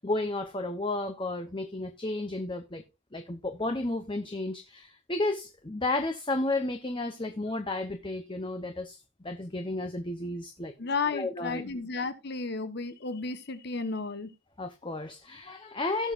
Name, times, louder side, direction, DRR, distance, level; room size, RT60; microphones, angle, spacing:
voice 1, 0.0-2.8 3.1-10.7 11.1-11.6 14.6-16.1, left 2 dB, 20° left, 0.8 m, -32 dB
voice 2, 10.8-14.3, left 4 dB, 50° left, 1.1 m, -33 dB
17.5 x 6.1 x 2.5 m
head